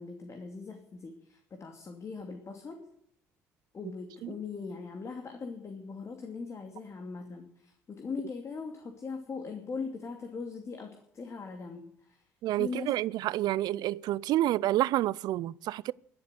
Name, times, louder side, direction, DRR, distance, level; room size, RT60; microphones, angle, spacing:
voice 1, 0.0-2.8 3.7-12.2 12.6-12.9, left 4 dB, 40° left, 2.7 m, -40 dB
voice 2, 12.4-15.9, right 14 dB, 60° right, 0.5 m, -29 dB
12.5 x 11.0 x 8.2 m
hypercardioid pair, 55°, 8 cm